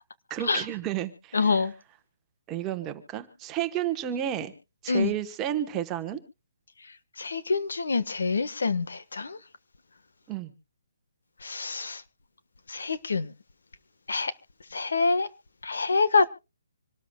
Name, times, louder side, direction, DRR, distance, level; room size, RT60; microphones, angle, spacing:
voice 1, 0.3-1.7 2.5-4.5 4.8-6.2 10.3-10.5, right 11 dB, 15° right, 1.1 m, -31 dB
voice 2, 1.3-1.7 4.9-5.1 7.2-9.4 11.4-12.0 12.7-13.3 14.1-14.3 14.7-15.3 15.6-16.3, left 4 dB, 85° left, 1.4 m, -26 dB
26.5 x 13.0 x 2.3 m
hypercardioid pair, 170°, 0 cm